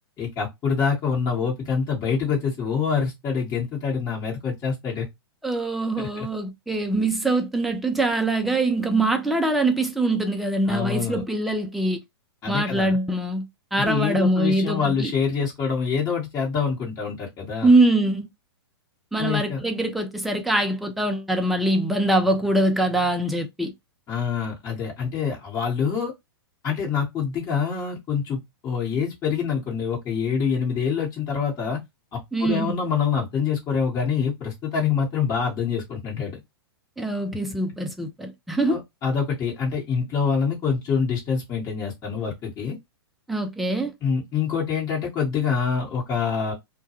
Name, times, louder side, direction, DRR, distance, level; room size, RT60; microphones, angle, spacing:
voice 1, 0.2-5.1 6.0-6.3 10.6-11.2 12.4-13.0 13.8-17.7 19.2-19.6 24.1-26.1 26.6-31.8 32.1-36.4 38.7-42.8 44.0-46.5, left 6 dB, 25° left, 1.1 m, -26 dB
voice 2, 5.4-12.0 12.5-13.5 13.7-15.1 17.6-18.3 19.1-23.7 32.3-32.8 37.0-38.8 43.3-43.9, right 2 dB, ahead, 0.4 m, -23 dB
2.2 x 2.2 x 2.9 m
figure-of-eight pair, 105°, 13 cm